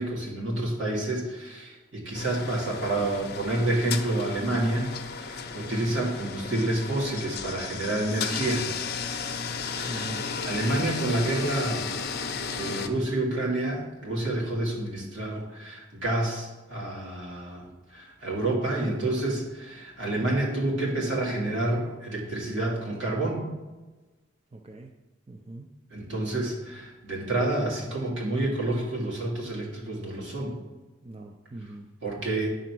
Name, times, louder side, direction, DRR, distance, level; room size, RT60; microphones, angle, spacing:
voice 1, 0.0-4.9 5.2-8.7 9.7-10.1 10.4-11.9 12.3-23.4 25.9-30.6 32.0-32.5, right 1 dB, 70° right, -3 dB, 2.4 m, -29 dB
sound 1, 2.1-12.9, left 5 dB, 55° left, 0.7 m, -34 dB
voice 2, 9.9-10.4 24.5-24.9 25.3-25.7 31.0-31.9, right 2 dB, 30° right, 3 dB, 0.5 m, -41 dB
9.6 x 4.0 x 6.1 m, 1.2 s
head